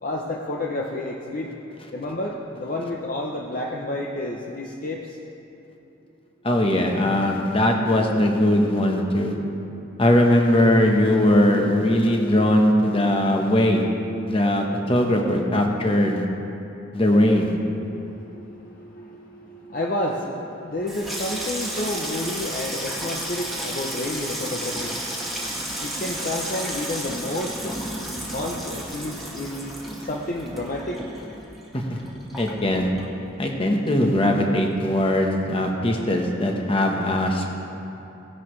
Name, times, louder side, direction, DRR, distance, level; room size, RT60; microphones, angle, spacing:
voice 1, 0.0-1.5 1.9-5.1 17.8-25.5 25.8-27.8 28.3-29.7 30.1-31.0, left 1 dB, 45° left, -1 dB, 0.7 m, -30 dB
voice 2, 6.4-9.3 10.0-13.8 14.3-16.2 16.9-17.5 31.7-31.9 32.4-32.9 33.4-37.5, left 1 dB, 30° left, 2 dB, 1.1 m, -20 dB
Water tap faucet / Sink (filling or washing), 20.7-33.6 33.9-34.5 34.8-35.1, right 1 dB, ahead, 1.7 m, -33 dB
17.0 x 10.5 x 3.2 m, 3.0 s
head